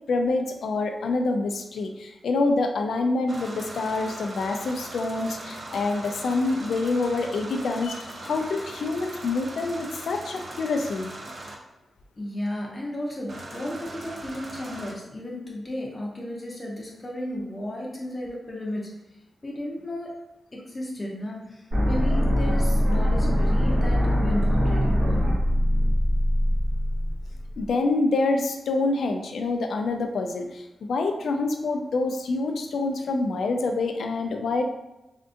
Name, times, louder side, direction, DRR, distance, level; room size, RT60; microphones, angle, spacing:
voice 1, 0.1-11.1 27.6-34.6, left 3 dB, 80° left, 5 dB, 0.3 m, -26 dB
sound 1, 3.3-11.5 13.3-14.9, right 1 dB, 40° right, 0.4 m, -40 dB
voice 2, 12.2-18.9 19.4-20.1 20.5-25.3, left 1 dB, 20° left, -3 dB, 0.5 m, -34 dB
sound 2, 21.7-27.7, equal, 75° right, 1.2 m, -22 dB
3.5 x 2.5 x 2.5 m, 0.98 s
wide cardioid pair, 170°, 0 cm